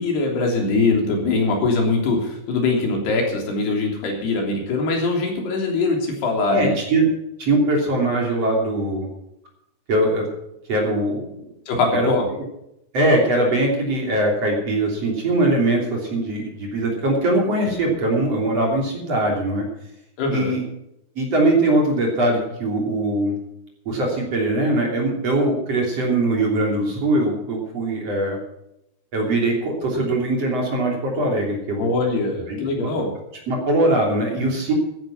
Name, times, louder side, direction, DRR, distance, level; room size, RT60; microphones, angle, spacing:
voice 1, 0.0-6.7 11.7-12.3 20.2-20.6 31.8-33.1, left 3 dB, 75° left, 1 dB, 5.3 m, -22 dB
voice 2, 6.5-7.1 7.4-9.1 9.9-10.3 10.7-11.3 11.9-12.1 12.9-19.6 20.3-20.6 21.2-23.4 23.9-28.4 29.1-31.8 32.5-32.9 33.5-34.7, right 1 dB, 40° right, 0 dB, 4.0 m, -21 dB
14.5 x 11.0 x 5.9 m, 0.82 s
omnidirectional pair, 4.8 m